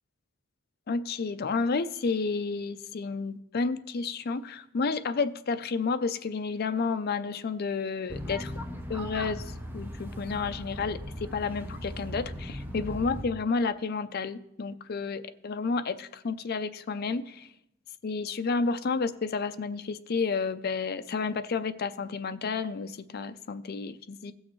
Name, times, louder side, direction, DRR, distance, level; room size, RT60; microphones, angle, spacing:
voice 1, 0.9-8.5 8.9-17.5 18.0-24.3, left 4 dB, 45° left, 11 dB, 0.4 m, -31 dB
sound 1, 8.1-13.2, equal, 10° right, 0.7 m, -38 dB
16.5 x 6.3 x 3.1 m, 0.81 s
head